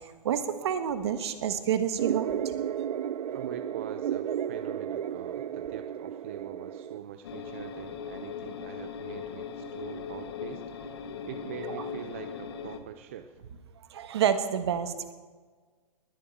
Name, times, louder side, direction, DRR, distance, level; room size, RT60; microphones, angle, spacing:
voice 1, 0.0-2.5 11.6-11.8 13.9-15.1, right 8 dB, 45° right, 10 dB, 1.4 m, -29 dB
sound 1, 2.0-7.0, right 9 dB, 85° right, 0.6 m, -33 dB
voice 2, 3.3-13.4, right 9 dB, 20° right, 8 dB, 0.4 m, -43 dB
sound 2, 7.2-12.8, left 6 dB, 40° left, 1.1 m, -39 dB
21.0 x 7.6 x 9.1 m, 1.5 s
hypercardioid pair, 175°, 20 cm